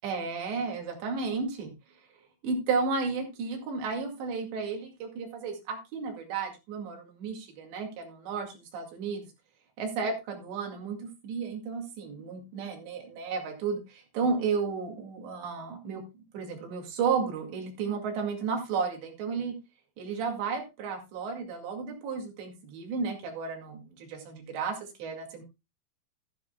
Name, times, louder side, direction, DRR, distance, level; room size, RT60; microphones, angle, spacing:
voice 1, 0.0-1.7 2.4-9.3 9.8-16.0 16.3-19.5 20.0-25.4, right 5 dB, 75° right, 3 dB, 4.4 m, -33 dB
13.0 x 12.5 x 2.2 m, 0.25 s
omnidirectional pair, 5.2 m